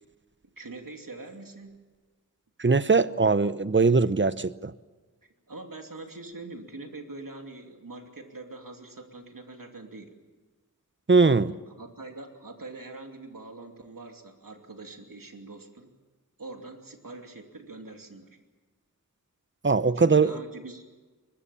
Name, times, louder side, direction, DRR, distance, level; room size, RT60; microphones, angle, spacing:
voice 1, 0.6-1.8 5.5-10.1 11.7-15.9 16.4-18.4 19.9-20.8, right 2 dB, 85° right, 3 dB, 2.9 m, -43 dB
voice 2, 2.6-4.7 11.1-11.6 19.6-20.4, right 4 dB, 35° right, 14 dB, 0.9 m, -21 dB
24.0 x 22.0 x 7.1 m, 1.3 s
wide cardioid pair, 55°, 33 cm